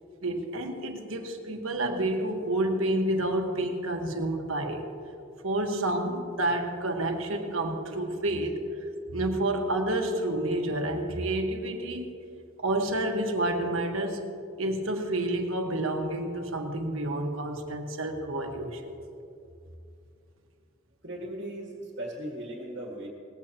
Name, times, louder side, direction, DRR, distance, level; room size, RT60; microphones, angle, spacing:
voice 1, 0.2-4.8 5.4-8.6 9.1-12.1 12.6-14.2 14.6-18.9, right 1 dB, 90° right, 4 dB, 1.4 m, -29 dB
voice 2, 21.0-23.1, right 1 dB, 55° right, -1 dB, 1.8 m, -37 dB
19.0 x 15.5 x 3.0 m, 2.6 s
head